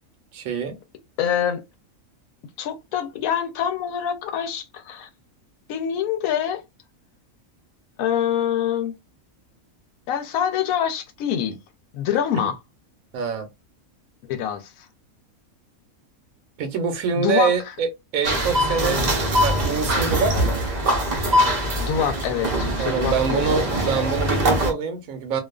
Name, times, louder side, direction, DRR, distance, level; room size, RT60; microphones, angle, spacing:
voice 1, 0.3-0.8 12.3-12.5 13.1-13.5 16.6-19.1 19.4-20.6 22.8-25.4, right 5 dB, 80° right, 1.1 m, -25 dB
voice 2, 1.2-1.6 2.6-5.1 5.7-6.6 8.0-8.9 10.1-11.6 11.9-12.6 14.3-14.9 17.1-17.5 18.8-19.1 21.8-24.1, left 9 dB, 80° left, 1.0 m, -25 dB
sound 1, 18.2-24.7, equal, 45° right, 0.6 m, -22 dB
2.5 x 2.3 x 2.2 m
omnidirectional pair, 1.5 m